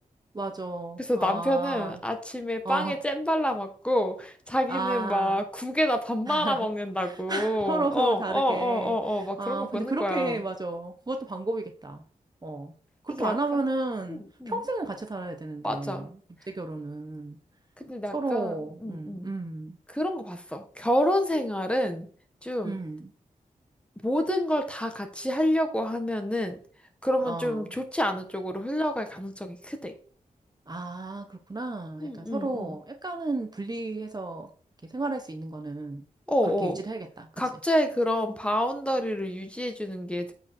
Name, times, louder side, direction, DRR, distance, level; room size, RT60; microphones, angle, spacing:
voice 1, 0.3-2.0 2.6-3.0 4.7-5.5 6.3-6.7 7.0-12.0 12.4-12.7 13.0-16.2 16.5-17.4 18.1-19.8 22.6-23.1 27.2-27.7 30.7-34.5 34.8-36.0 36.4-37.3, right 2 dB, 30° right, 5 dB, 1.1 m, -33 dB
voice 2, 1.0-10.4 13.1-13.6 14.1-14.6 15.6-16.1 17.8-19.3 19.9-22.1 22.4-22.8 24.0-26.6 27.0-29.9 32.0-32.8 36.3-36.8 37.4-40.3, equal, 10° left, 6 dB, 1.7 m, -28 dB
8.3 x 5.0 x 4.6 m, 0.44 s
cardioid pair, 65°, 14 cm